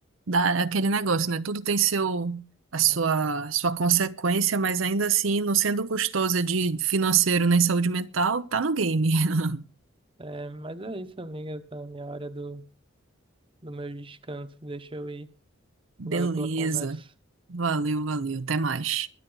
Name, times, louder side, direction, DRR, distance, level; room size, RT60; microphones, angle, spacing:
voice 1, 0.3-2.4 2.7-9.6 16.0-17.0 17.5-19.1, right 5 dB, 80° right, 0.8 m, -25 dB
voice 2, 10.2-12.6 13.6-15.3 16.0-17.1, right 2 dB, 25° right, 1.0 m, -38 dB
22.5 x 9.3 x 3.9 m
head